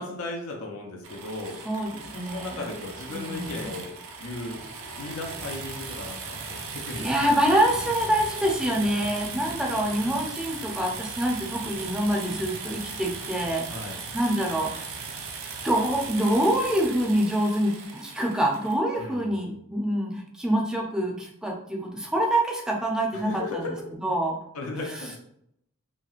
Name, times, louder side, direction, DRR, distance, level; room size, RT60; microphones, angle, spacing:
voice 1, 0.0-1.6 2.1-3.9 4.2-4.6 5.0-7.4 9.0-9.6 13.7-14.0 19.0-19.5 23.1-23.8 24.5-25.2, left 2 dB, 85° left, 0 dB, 0.5 m, -36 dB
sound 1, 1.0-18.8, right 4 dB, 65° right, 0.5 m, -38 dB
voice 2, 1.6-2.7 3.1-3.7 7.0-13.6 14.1-14.9 15.6-23.7 24.0-24.4 24.9-25.1, right 1 dB, 5° right, -1 dB, 0.4 m, -26 dB
2.9 x 2.7 x 2.4 m, 0.74 s
head